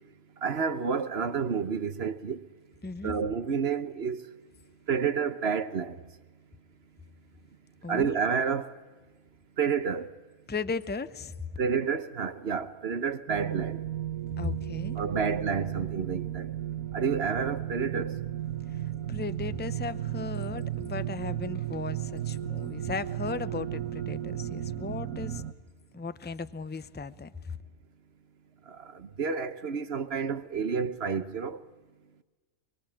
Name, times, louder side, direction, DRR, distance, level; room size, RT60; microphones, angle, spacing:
voice 1, 0.4-2.4 3.0-4.2 4.9-5.9 7.9-8.7 9.6-10.1 11.6-13.8 15.0-16.5 16.9-18.1 28.7-31.6, right 6 dB, 50° right, 1.2 m, -29 dB
voice 2, 2.8-3.2 7.8-8.1 10.5-11.4 14.4-15.0 18.7-25.4 25.9-27.6, left 4 dB, 15° left, 0.4 m, -36 dB
sound 1, 13.3-25.5, right 11 dB, 75° right, 1.5 m, -34 dB
25.0 x 23.0 x 8.8 m
omnidirectional pair, 1.5 m